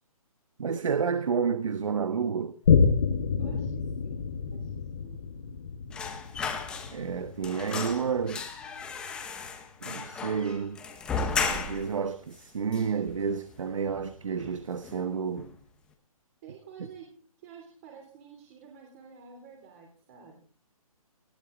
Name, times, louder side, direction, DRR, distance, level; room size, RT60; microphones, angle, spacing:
voice 1, 0.6-2.6 6.9-8.6 9.8-10.8 11.4-15.5, right 6 dB, 60° right, 1.2 m, -30 dB
Boom, 2.7-9.6 10.1-10.2, left 6 dB, 40° left, 1.5 m, -29 dB
voice 2, 3.4-4.2 4.5-4.7 5.0-5.2 16.4-17.1 17.4-20.4, right 6 dB, 25° right, 3.4 m, -50 dB
sound 1, 5.9-7.2 7.4-12.0 12.3-12.4 12.7-13.5 13.9-14.1 14.4-15.1 15.4-15.5, left 5 dB, 5° left, 1.0 m, -35 dB
20.0 x 16.0 x 3.9 m
hypercardioid pair, 170°, 19 cm